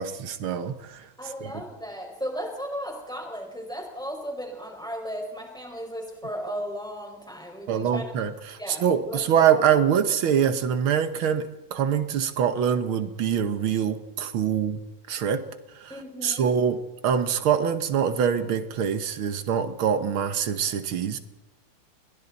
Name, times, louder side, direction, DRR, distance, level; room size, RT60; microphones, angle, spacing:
voice 1, 0.0-1.1 1.4-1.5 7.7-14.8 15.1-15.4 15.7-15.9 16.2-21.2, right 8 dB, 90° right, 9 dB, 2.0 m, -24 dB
voice 2, 1.2-8.0 8.6-9.2 15.9-16.6, equal, ahead, 1 dB, 5.2 m, -35 dB
30.0 x 22.5 x 4.1 m, 1.1 s
omnidirectional pair, 2.2 m